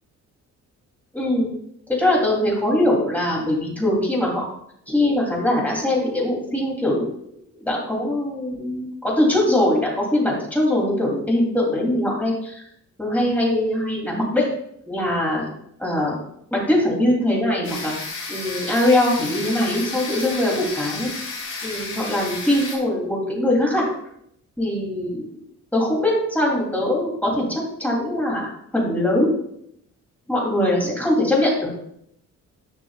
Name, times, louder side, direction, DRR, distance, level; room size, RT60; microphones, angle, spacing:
voice 1, 1.1-1.5 1.9-4.4 4.9-7.1 7.6-12.5 13.0-14.4 14.9-15.5 15.8-16.2 16.5-17.9 18.3-21.1 21.6-23.9 24.6-25.4 25.7-28.5 28.7-29.4 30.3-31.7, left 1 dB, 5° left, -3 dB, 3.1 m, -21 dB
sound 1, 17.6-22.8, left 3 dB, 45° left, 2.7 m, -32 dB
11.0 x 6.0 x 2.4 m, 0.72 s
cardioid pair, 130°, 29 cm